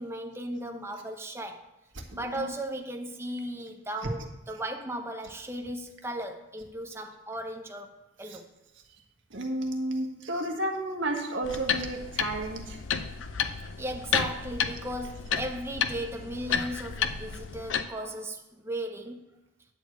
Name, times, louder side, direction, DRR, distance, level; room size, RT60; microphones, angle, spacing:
voice 1, 0.0-1.6 2.1-8.5 13.8-19.3, right 1 dB, 15° right, 0.8 m, -36 dB
voice 2, 1.9-2.5 8.2-8.4 8.9-9.0 9.3-12.8 18.0-18.1, right 1 dB, 85° right, 1.5 m, -32 dB
sound 1, 11.4-17.8, left 7 dB, 85° left, 0.6 m, -31 dB
10.5 x 4.8 x 7.9 m
head